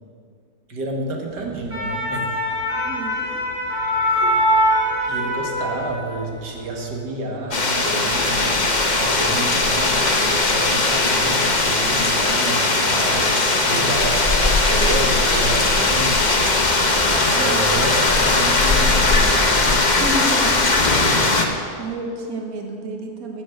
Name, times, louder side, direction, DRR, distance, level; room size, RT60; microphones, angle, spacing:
voice 1, 0.7-2.4 4.1-4.3 5.1-8.6 9.0-16.5 17.0-20.3, right 2 dB, 85° right, 1 dB, 2.2 m, -29 dB
sound 1, 1.4-6.2 6.6-6.8, equal, 15° right, 4.4 m, -22 dB
voice 2, 2.9-3.3 17.3-17.8 20.0-20.6 21.8-23.4, right 1 dB, 60° right, 2 dB, 1.8 m, -30 dB
sound 2, 7.5-21.5, left 3 dB, 30° left, 1.1 m, -19 dB
14.0 x 8.5 x 7.9 m, 2.3 s
omnidirectional pair, 1.8 m